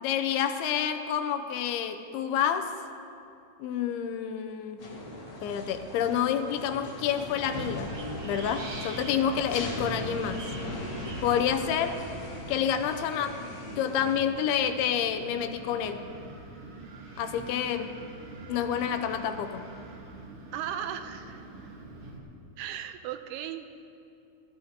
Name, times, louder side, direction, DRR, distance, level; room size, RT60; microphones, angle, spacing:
voice 1, 0.0-2.7 3.6-4.8 5.4-8.0 8.2-10.5 11.2-12.0 12.5-16.0 17.2-17.9 18.5-19.6, left 8 dB, 80° left, 7 dB, 2.5 m, -28 dB
sound 1, 4.8-14.2, left 1 dB, 45° left, 1.9 m, -39 dB
Wind, 7.0-22.2, right 2 dB, 65° right, 1.4 m, -44 dB
voice 2, 20.5-21.4 22.6-23.8, right 10 dB, 80° right, 8 dB, 2.5 m, -36 dB
20.5 x 15.5 x 2.8 m, 2.6 s
omnidirectional pair, 4.6 m